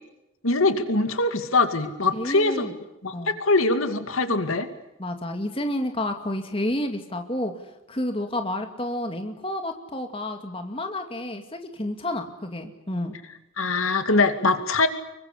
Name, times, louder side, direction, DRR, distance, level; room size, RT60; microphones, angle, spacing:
voice 1, 0.4-2.7 3.0-4.7 13.6-14.9, left 3 dB, 85° left, 9 dB, 2.4 m, -22 dB
voice 2, 2.1-2.7 3.1-3.4 5.0-7.5 7.9-13.1, left 1 dB, 25° left, 5 dB, 2.4 m, -30 dB
25.5 x 23.5 x 8.4 m, 0.92 s
head